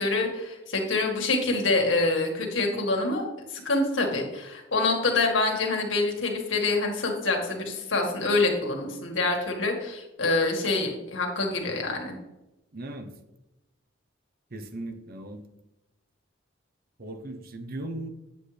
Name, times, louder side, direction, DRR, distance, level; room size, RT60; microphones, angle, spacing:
voice 1, 0.0-3.2 3.5-12.2, left 3 dB, 80° left, 2 dB, 1.9 m, -26 dB
voice 2, 12.7-13.1 14.5-15.4 17.0-18.1, right 1 dB, 50° right, 6 dB, 0.9 m, -37 dB
8.9 x 7.7 x 3.4 m, 0.97 s
head